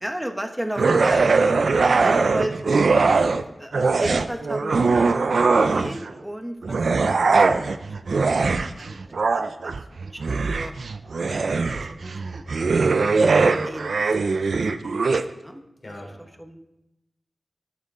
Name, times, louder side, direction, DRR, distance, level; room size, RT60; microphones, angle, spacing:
voice 1, 0.0-1.6 2.0-2.5 3.0-3.2 3.6-7.0 7.3-7.8 8.2-9.7 10.0-10.7 11.2-12.8 13.4-14.0 14.6-15.6 16.4-16.6, right 1 dB, 10° right, 5 dB, 1.2 m, -35 dB
sound 1, 0.8-3.4 3.7-6.1 6.6-15.2, right 4 dB, 80° right, 0.5 m, -21 dB
voice 2, 1.7-2.3 15.8-16.4, left 1 dB, 50° left, -2 dB, 3.6 m, -39 dB
12.5 x 9.7 x 3.8 m, 0.93 s
cardioid pair, 55°, 0 cm